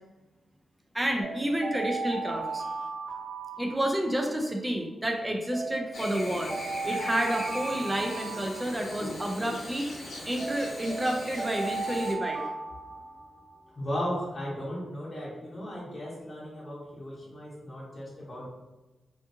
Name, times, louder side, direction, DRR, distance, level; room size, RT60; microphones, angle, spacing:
voice 1, 0.9-2.6 3.6-6.5 6.8-9.9 10.3-12.4, right 1 dB, 10° right, 1 dB, 0.4 m, -30 dB
sound 1, 1.2-4.4 5.5-9.3 10.4-13.6, right 4 dB, 65° right, 0.6 m, -36 dB
Chirp tweet / Buzz, 5.9-12.1, left 1 dB, 60° left, 0.6 m, -40 dB
voice 2, 13.6-18.5, equal, 25° left, -6 dB, 0.8 m, -36 dB
2.5 x 2.4 x 2.6 m, 1.1 s
wide cardioid pair, 110°, 0 cm